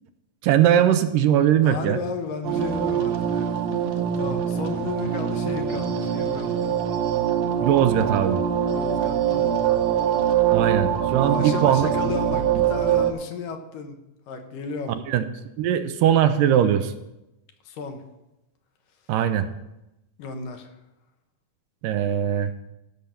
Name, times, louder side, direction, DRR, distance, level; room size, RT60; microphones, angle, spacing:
voice 1, 0.4-2.0 7.6-8.4 10.5-12.2 14.9-15.3 15.6-16.9 19.1-19.5 21.8-22.5, right 10 dB, 85° right, 10 dB, 2.3 m, -20 dB
voice 2, 1.6-3.6 4.2-6.8 8.7-9.6 11.2-15.0 17.6-18.0 20.2-20.8, left 5 dB, 80° left, 5 dB, 2.8 m, -33 dB
sound 1, 2.4-13.1, right 9 dB, 65° right, 1.9 m, -24 dB
15.5 x 6.4 x 5.8 m, 0.92 s
omnidirectional pair, 3.9 m